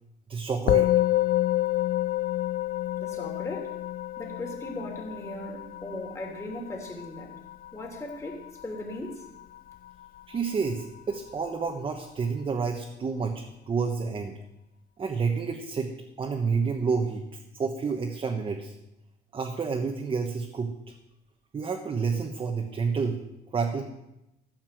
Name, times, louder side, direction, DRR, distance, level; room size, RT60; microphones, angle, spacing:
voice 1, 0.3-0.9 10.3-14.3 15.0-15.9 16.2-17.2 17.5-18.7 19.3-20.7 21.5-23.2 23.5-23.8, right 5 dB, 30° right, 2 dB, 1.3 m, -29 dB
Musical instrument, 0.7-10.2, left 15 dB, 60° left, 0.4 m, -29 dB
voice 2, 3.0-3.7 4.2-7.3 7.7-9.3, left 1 dB, 15° left, 0 dB, 3.2 m, -38 dB
14.0 x 5.9 x 7.8 m, 0.92 s
cardioid pair, 110°, 17 cm